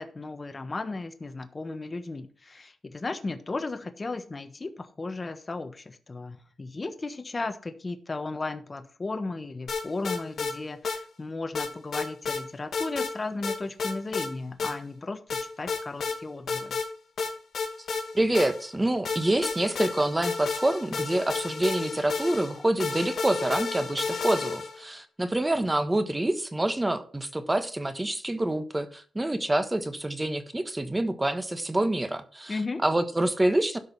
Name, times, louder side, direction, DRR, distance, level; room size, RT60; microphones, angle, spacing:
voice 1, 0.0-16.8 32.5-32.8, left 3 dB, 30° left, 9 dB, 1.2 m, -35 dB
sound 1, 9.7-10.5 10.8-11.0 11.5-12.4 12.7-13.1 13.4-14.3 14.6-14.7 15.3-16.2 16.5-16.9 17.2-18.7 19.0-24.8, left 4 dB, 65° left, 2.5 m, -31 dB
voice 2, 18.1-33.8, right 1 dB, 15° right, 10 dB, 1.4 m, -27 dB
12.5 x 5.2 x 5.8 m, 0.42 s
cardioid pair, 90°, 0 cm